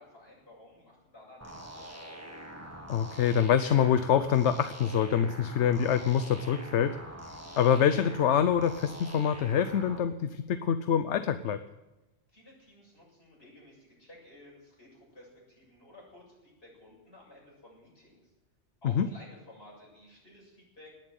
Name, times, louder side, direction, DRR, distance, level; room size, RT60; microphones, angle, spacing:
voice 1, 0.0-2.1 12.3-18.3 18.8-20.9, left 1 dB, 65° left, -4 dB, 7.8 m, -54 dB
sound 1, 1.4-10.0, right 1 dB, 15° right, 1.8 m, -45 dB
voice 2, 2.9-7.0 7.6-11.6 19.0-19.1, left 8 dB, 85° left, 11 dB, 1.0 m, -25 dB
19.0 x 7.6 x 9.1 m, 1.0 s
omnidirectional pair, 1.2 m